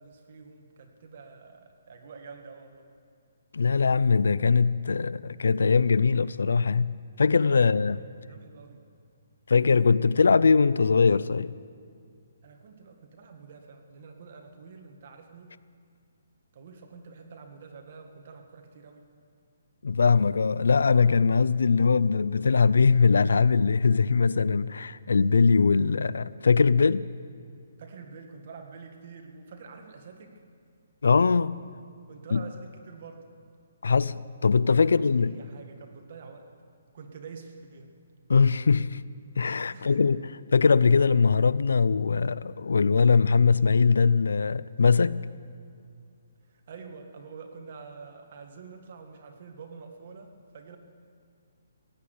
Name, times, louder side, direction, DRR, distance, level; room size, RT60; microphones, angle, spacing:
voice 1, 0.0-2.9 7.6-8.8 12.4-15.6 16.5-19.1 27.8-30.4 32.1-33.3 34.8-36.5 36.9-37.9 39.7-40.1 46.4-50.8, right 5 dB, 45° right, 1.8 m, -47 dB
voice 2, 3.5-8.0 9.5-11.5 19.8-27.1 31.0-31.6 32.3-32.4 33.8-35.3 38.3-39.0 39.4-40.2 40.5-45.2, left 5 dB, 90° left, 0.4 m, -21 dB
16.5 x 8.6 x 9.5 m
hypercardioid pair, 165°, 0 cm